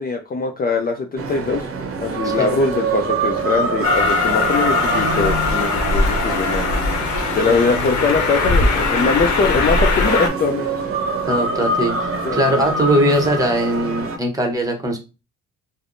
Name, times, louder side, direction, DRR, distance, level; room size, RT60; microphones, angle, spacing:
voice 1, 0.0-1.7 2.0-6.7 7.3-10.7 12.2-12.5, left 4 dB, 30° left, 4 dB, 0.4 m, -21 dB
sound 1, 1.2-14.2, right 3 dB, 45° right, 0.7 m, -25 dB
Train, 3.8-10.3, left 3 dB, 70° left, 0.8 m, -20 dB
voice 2, 11.3-11.9 12.3-15.0, right 1 dB, 10° right, 2 dB, 0.9 m, -20 dB
3.4 x 2.0 x 2.5 m, 0.29 s
cardioid pair, 90°, 30 cm